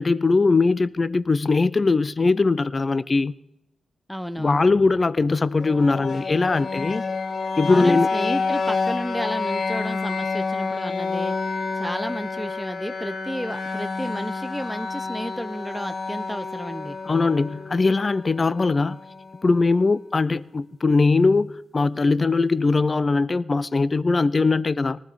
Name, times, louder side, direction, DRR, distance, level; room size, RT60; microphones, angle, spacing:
voice 1, 0.0-3.3 4.4-7.0 7.6-8.1 17.1-19.0 19.4-25.0, left 3 dB, 40° left, 0.5 m, -20 dB
voice 2, 4.1-4.6 7.7-11.4 11.8-17.0, equal, ahead, 0.8 m, -32 dB
sound 1, 5.6-19.5, left 4 dB, 60° left, 1.2 m, -29 dB
19.0 x 13.5 x 5.2 m
cardioid pair, 55°, 0 cm